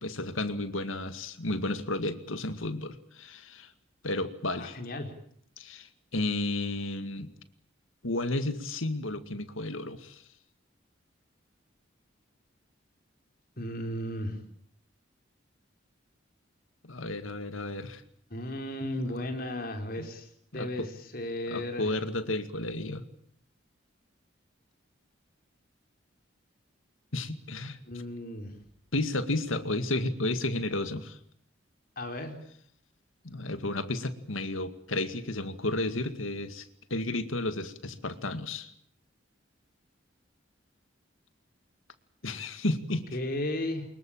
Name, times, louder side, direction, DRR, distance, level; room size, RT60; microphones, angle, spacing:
voice 1, 0.0-3.7 4.0-4.8 5.6-7.3 8.0-10.2 16.8-18.0 20.0-20.1 20.5-20.9 21.5-23.0 27.1-27.8 28.9-31.2 33.2-38.7 42.2-43.1, left 2 dB, 85° left, 10 dB, 2.2 m, -32 dB
voice 2, 4.5-5.1 13.6-14.4 18.3-21.9 27.8-28.5 32.0-32.3 43.1-43.9, left 1 dB, 45° left, 4 dB, 4.3 m, -35 dB
24.5 x 22.0 x 8.9 m, 0.67 s
head